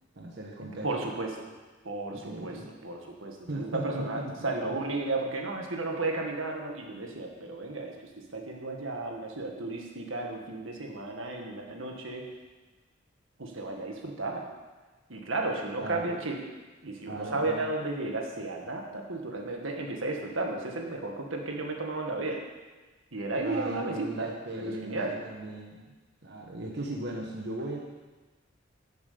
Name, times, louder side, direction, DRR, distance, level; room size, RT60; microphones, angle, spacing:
voice 1, 0.1-0.9 2.1-2.7 3.5-4.3 4.6-4.8 15.8-16.1 17.1-17.7 23.4-25.9 26.2-27.8, right 1 dB, 60° right, -1 dB, 1.3 m, -37 dB
voice 2, 0.8-1.5 1.8-8.0 8.3-12.2 13.4-14.5 15.1-16.4 16.8-22.4 23.1-25.2, right 2 dB, 80° right, 1 dB, 1.8 m, -33 dB
11.0 x 7.3 x 6.9 m, 1.3 s
head